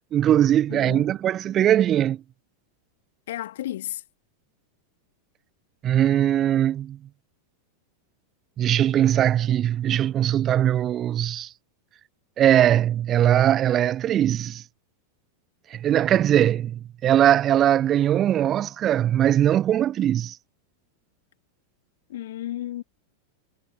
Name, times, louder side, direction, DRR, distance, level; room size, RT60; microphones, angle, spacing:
voice 1, 0.1-2.2 5.8-7.0 8.6-11.5 12.4-14.6 15.7-20.4, right 11 dB, 30° right, 1.0 m, -20 dB
voice 2, 0.7-1.2 3.3-4.0 22.1-22.8, left 13 dB, 55° left, 2.7 m, -33 dB
figure-of-eight pair, 90°, 0 cm